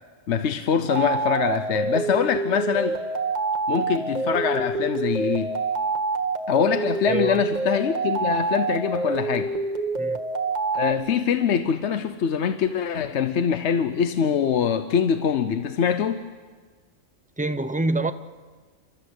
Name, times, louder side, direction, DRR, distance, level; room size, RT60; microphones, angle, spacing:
voice 1, 0.3-3.0 3.7-5.5 6.5-9.5 10.7-16.2, left 7 dB, 65° left, 9 dB, 1.0 m, -24 dB
sound 1, 0.9-10.9, right 3 dB, 35° right, 1.4 m, -27 dB
voice 2, 7.1-7.4 10.0-10.2 17.4-18.1, right 2 dB, 10° right, 10 dB, 0.4 m, -25 dB
29.0 x 13.5 x 8.0 m, 1.5 s
omnidirectional pair, 1.3 m